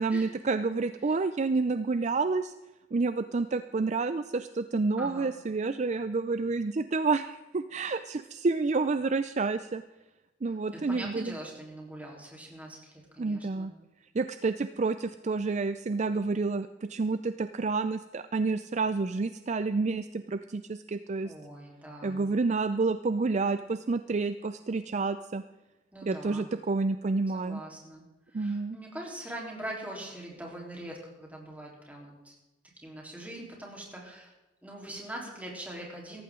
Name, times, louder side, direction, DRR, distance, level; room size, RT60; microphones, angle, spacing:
voice 1, 0.0-2.5 2.9-9.8 10.4-11.3 13.2-13.7 14.1-21.3 22.0-25.4 26.0-27.6 28.3-28.8, right 3 dB, 40° right, 11 dB, 0.4 m, -29 dB
voice 2, 5.0-5.3 10.7-13.7 21.2-22.2 25.9-26.4 27.3-28.0 28.3-32.4 32.8-34.3 34.6-36.2, right 1 dB, 10° right, -2 dB, 3.7 m, -42 dB
17.0 x 14.5 x 3.8 m, 1.0 s
head